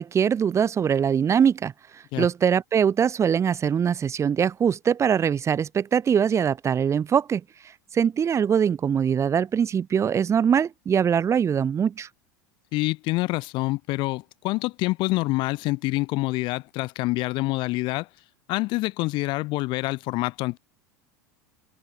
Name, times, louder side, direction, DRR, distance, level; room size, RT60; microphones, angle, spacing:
voice 1, 0.0-1.7 2.2-7.4 7.9-12.1, right 7 dB, 30° right, 1.6 m, -22 dB
voice 2, 12.7-18.1 18.5-20.6, left 21 dB, 55° left, 1.6 m, -26 dB
open air
hypercardioid pair, 80°, 10 cm